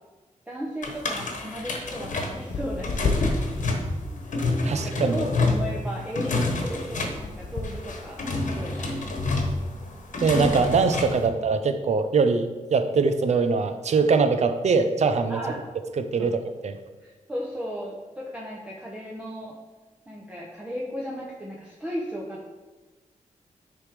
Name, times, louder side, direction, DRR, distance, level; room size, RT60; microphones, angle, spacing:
voice 1, 0.5-3.5 4.1-4.3 4.6-9.0 15.3-15.6 16.2-16.3 17.0-19.6 20.1-22.5, equal, 10° right, -3 dB, 0.9 m, -35 dB
sound 1, 0.8-11.3, left 2 dB, 75° left, 1.2 m, -28 dB
voice 2, 4.6-5.2 10.2-15.4 16.0-16.7, right 4 dB, 60° right, 9 dB, 0.6 m, -22 dB
10.0 x 3.6 x 4.9 m, 1.3 s
wide cardioid pair, 125°, 13 cm